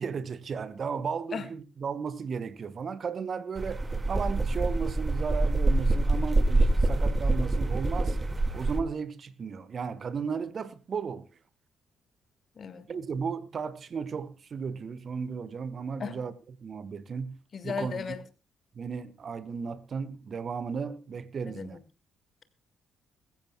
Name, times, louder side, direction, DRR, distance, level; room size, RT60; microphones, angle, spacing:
voice 1, 0.0-3.8 4.1-8.2 8.5-11.3 12.9-16.3 16.6-17.3 17.6-18.0 18.8-21.8, right 5 dB, 45° right, 1.3 m, -35 dB
sound 1, 3.6-8.8, right 2 dB, 25° right, 2.0 m, -26 dB
voice 2, 12.6-12.9 16.0-16.2 17.5-18.2 21.5-21.8, left 6 dB, 45° left, 1.7 m, -36 dB
21.5 x 15.0 x 2.3 m
figure-of-eight pair, 40°, 0 cm